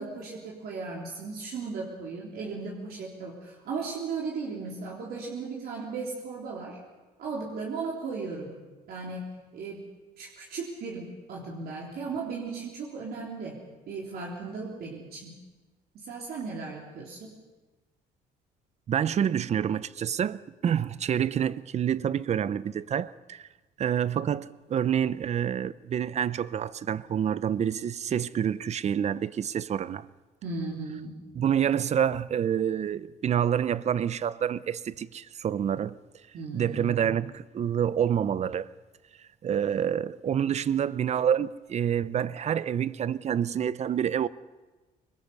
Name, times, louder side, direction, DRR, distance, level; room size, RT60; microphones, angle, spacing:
voice 1, 0.0-6.8 7.2-8.6 8.9-9.9 10.2-13.6 13.9-15.4 16.0-17.3 30.4-31.2 36.3-37.0, right 4 dB, 65° right, 3.6 m, -36 dB
voice 2, 18.9-23.5 23.8-30.1 31.3-36.0 36.5-38.7 39.4-44.3, right 9 dB, 40° right, 0.7 m, -27 dB
24.5 x 21.0 x 5.6 m
cardioid pair, 110°, 17 cm